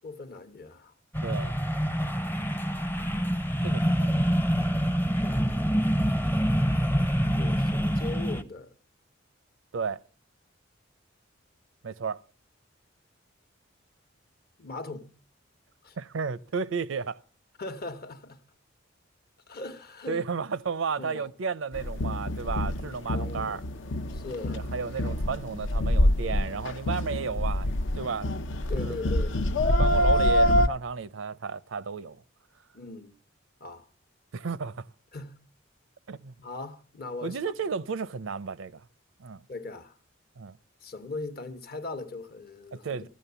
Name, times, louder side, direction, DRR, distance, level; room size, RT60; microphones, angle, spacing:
voice 1, 0.0-0.9 5.2-5.8 7.3-8.7 14.6-15.1 15.8-16.0 17.6-18.4 19.5-20.2 21.0-21.3 23.1-23.6 24.1-24.7 28.7-29.4 32.7-33.2 33.6-33.9 35.1-35.4 36.4-37.4 39.5-40.0 40.8-43.0, left 3 dB, 50° left, 1.0 m, -39 dB
sound 1, 1.1-8.4, equal, 10° left, 0.6 m, -26 dB
voice 2, 1.2-1.6 3.6-4.1 9.7-10.0 11.8-12.2 16.0-17.2 20.1-23.6 24.5-28.3 28.7-29.0 29.7-32.2 34.3-34.9 36.1-36.3 37.2-38.9 39.2-39.4 40.4-40.6 42.7-43.1, right 5 dB, 80° right, 0.5 m, -33 dB
sound 2, 21.7-30.7, left 1 dB, 70° left, 0.7 m, -26 dB
14.5 x 9.5 x 6.8 m
head